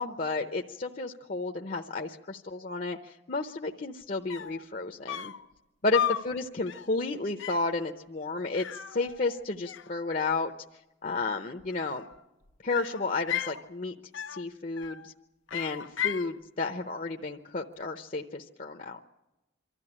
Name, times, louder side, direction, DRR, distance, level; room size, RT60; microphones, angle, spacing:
voice 1, 0.0-5.3 5.8-10.5 11.0-12.1 12.6-13.9 14.3-15.1 15.5-19.0, left 3 dB, 45° left, 4 dB, 0.8 m, -32 dB
sound 1, 4.0-4.1 4.3-4.6 5.1-5.5 5.9-6.3 6.7-7.0 7.4-7.7 8.5-9.4 9.7-10.4 11.6-12.2 12.7-13.6 14.1-14.5 14.8-15.1 15.5-16.3, left 10 dB, 85° left, 0.9 m, -35 dB
25.0 x 13.5 x 9.9 m, 1.0 s
head